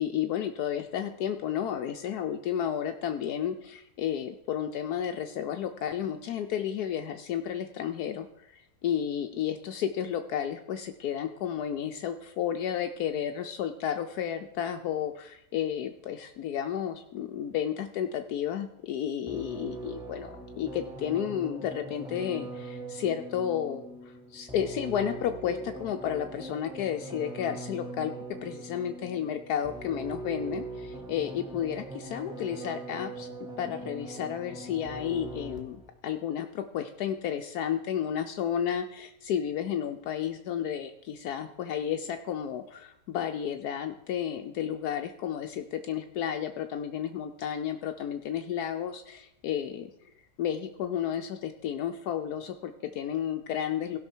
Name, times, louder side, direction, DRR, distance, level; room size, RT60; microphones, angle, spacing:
voice 1, 0.0-23.8 24.3-28.1 28.4-33.3 33.6-49.9 50.4-54.0, left 9 dB, 75° left, 6 dB, 1.1 m, -32 dB
sound 1, 19.3-35.9, right 2 dB, 5° right, 1.1 m, -41 dB
16.5 x 5.8 x 4.4 m, 0.77 s
omnidirectional pair, 1.7 m